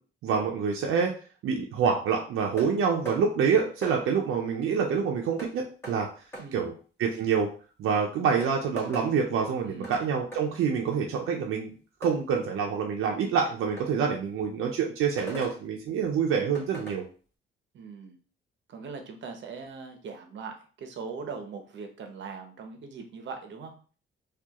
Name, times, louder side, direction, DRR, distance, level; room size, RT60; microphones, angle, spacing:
voice 1, 0.2-1.1 1.4-6.1 6.5-6.7 7.0-7.5 7.8-11.7 12.0-17.1, right 6 dB, 90° right, 1 dB, 0.6 m, -26 dB
sound 1, 2.6-2.7 3.1-3.2 3.8-4.0 5.4-5.5 5.8-6.0 6.3-6.5 7.8-7.9 8.4-9.1 9.8-10.1 10.3-10.4 12.0-12.2 13.8-13.9 15.2-15.6 16.5-17.0, right 1 dB, 10° left, 1.4 m, -39 dB
voice 2, 6.4-6.7 9.6-10.0 17.7-18.2 18.7-23.7, right 5 dB, 60° right, 5 dB, 0.8 m, -40 dB
4.5 x 2.4 x 2.9 m, 0.40 s
cardioid pair, 130°, 21 cm